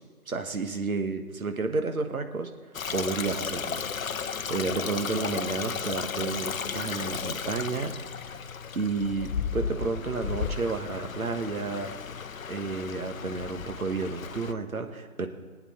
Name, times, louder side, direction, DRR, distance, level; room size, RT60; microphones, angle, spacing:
voice 1, 0.3-2.5 2.9-3.8 4.5-7.9 8.7-11.9 12.5-15.3, right 4 dB, 70° right, 7 dB, 1.4 m, -31 dB
Stream, 2.7-14.5, left 6 dB, 65° left, 0.7 m, -34 dB
19.5 x 8.8 x 4.2 m, 1.4 s
figure-of-eight pair, 145°, 44 cm